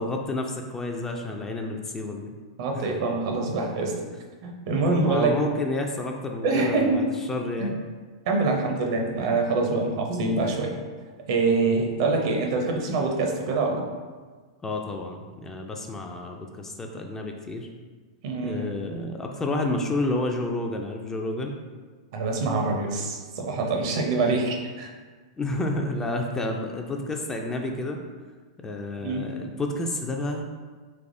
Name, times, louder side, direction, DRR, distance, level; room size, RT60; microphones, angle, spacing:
voice 1, 0.0-2.3 2.7-2.9 4.8-7.8 14.6-17.7 18.4-21.6 25.4-28.0 28.6-30.5, left 2 dB, 15° left, 2 dB, 0.3 m, -30 dB
voice 2, 2.6-3.9 4.4-5.3 6.4-7.0 7.6-7.7 8.3-10.7 11.3-13.8 18.2-18.9 22.1-24.9 29.0-29.3, right 3 dB, 60° right, 1 dB, 0.6 m, -25 dB
3.3 x 3.3 x 2.6 m, 1.4 s
hypercardioid pair, 115°, 3 cm